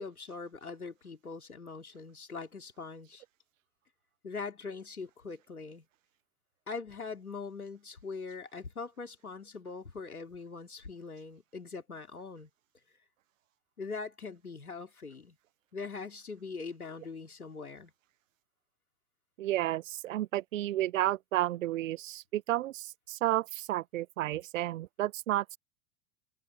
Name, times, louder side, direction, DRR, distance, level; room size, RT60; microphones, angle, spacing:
voice 1, 0.0-3.2 4.2-5.9 6.7-12.5 13.8-15.4 15.7-17.9, left 4 dB, 85° left, 2.9 m, -42 dB
voice 2, 19.4-25.6, right 14 dB, 65° right, 0.8 m, -32 dB
open air
figure-of-eight pair, 85°, 43 cm